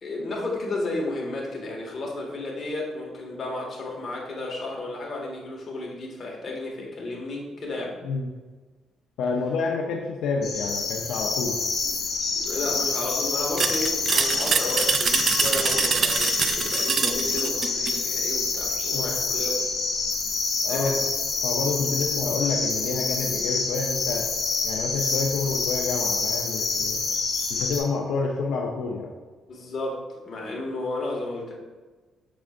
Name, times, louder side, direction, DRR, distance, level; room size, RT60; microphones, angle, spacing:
voice 1, 0.0-8.0 11.8-12.0 12.3-19.6 20.7-20.9 22.1-22.2 29.5-31.5, left 2 dB, 45° left, -2 dB, 1.8 m, -32 dB
voice 2, 9.2-11.6 18.9-19.2 20.6-21.0 21.4-24.3 24.6-27.0 27.5-29.1, left 4 dB, 85° left, 0 dB, 0.6 m, -28 dB
sound 1, 10.4-27.8, left 4 dB, 65° left, 1.8 m, -27 dB
sound 2, 13.6-18.0, right 6 dB, 50° right, 0.4 m, -25 dB
6.2 x 6.0 x 2.6 m, 1.3 s
cardioid pair, 90°, 0 cm